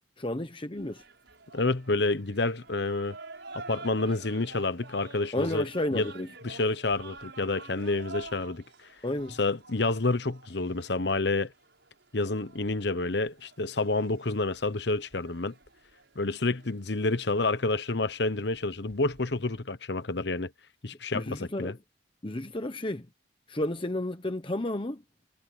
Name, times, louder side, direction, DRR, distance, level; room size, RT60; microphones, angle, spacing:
voice 1, 0.2-1.0 5.3-6.3 9.0-9.3 21.1-21.7 22.2-23.1 23.5-25.0, left 1 dB, 25° left, 1.0 m, -32 dB
sound 1, 0.8-19.6, right 3 dB, 65° right, 7.1 m, -49 dB
voice 2, 1.5-3.2 3.5-6.1 6.4-8.6 9.4-11.5 12.1-15.5 16.2-20.5 20.8-21.8, left 2 dB, 60° left, 1.1 m, -29 dB
head